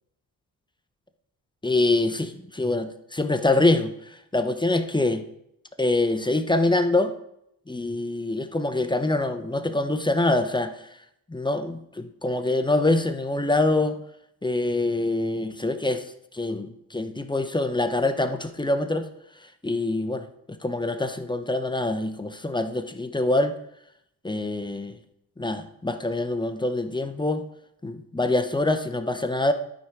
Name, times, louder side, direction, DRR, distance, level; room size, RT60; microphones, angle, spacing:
voice 1, 1.6-3.9 4.3-5.2 5.8-7.1 7.7-10.7 11.3-14.0 14.4-16.0 16.3-19.1 19.6-23.5 24.2-25.0 25.4-27.4 27.8-29.5, left 2 dB, 10° left, 8 dB, 0.7 m, -25 dB
11.5 x 4.9 x 4.7 m, 0.78 s
cardioid pair, 75°, 41 cm